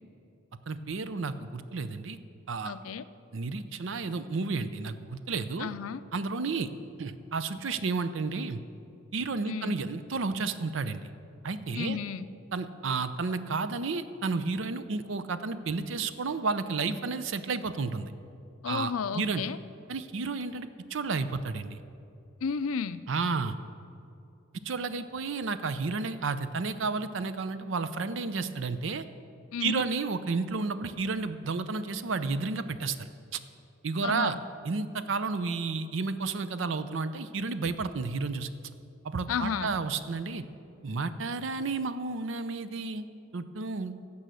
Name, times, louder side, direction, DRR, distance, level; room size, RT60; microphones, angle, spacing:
voice 1, 0.7-2.2 2.5-2.8 3.3-4.9 5.3-5.7 6.1-6.7 7.0-8.6 9.1-11.1 11.4-12.0 12.5-18.1 18.7-19.4 19.9-21.8 23.1-23.6 24.6-29.0 29.6-33.1 33.3-33.4 33.8-34.4 34.6-38.5 39.0-40.4 40.8-43.0 43.3-43.9, right 4 dB, 65° right, 12 dB, 0.5 m, -31 dB
voice 2, 2.6-3.1 5.6-6.0 9.5-9.8 11.7-12.3 18.6-19.6 22.4-23.0 29.5-29.8 34.0-34.4 39.3-39.7, left 6 dB, 90° left, 14 dB, 0.4 m, -32 dB
15.5 x 5.6 x 6.3 m, 2.6 s
head